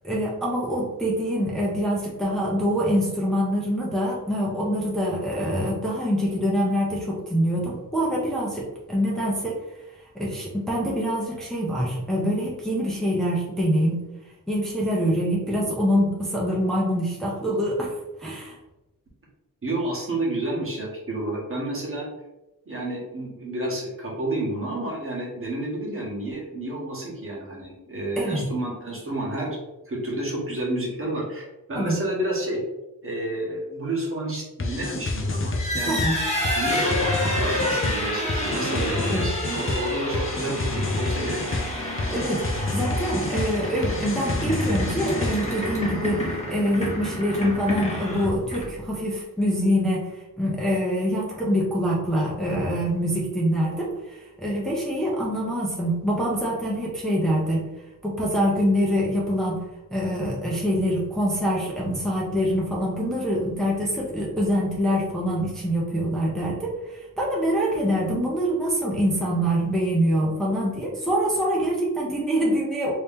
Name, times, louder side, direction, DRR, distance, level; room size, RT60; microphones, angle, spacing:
voice 1, 0.0-9.6 10.1-14.0 14.5-17.9 18.2-18.6 28.2-28.4 31.7-31.9 35.9-36.2 38.7-39.2 42.1-57.6 58.0-59.6 59.9-72.9, equal, ahead, -5 dB, 0.7 m, -25 dB
voice 2, 19.6-22.1 22.7-29.6 29.9-32.6 33.0-36.0 36.5-41.7, right 1 dB, 40° right, -4 dB, 1.2 m, -30 dB
sound 1, 34.6-45.6, left 2 dB, 40° left, 0.6 m, -29 dB
sound 2, 35.5-48.9, left 1 dB, 20° left, 1.1 m, -29 dB
3.0 x 2.9 x 3.5 m, 0.99 s
wide cardioid pair, 115°, 33 cm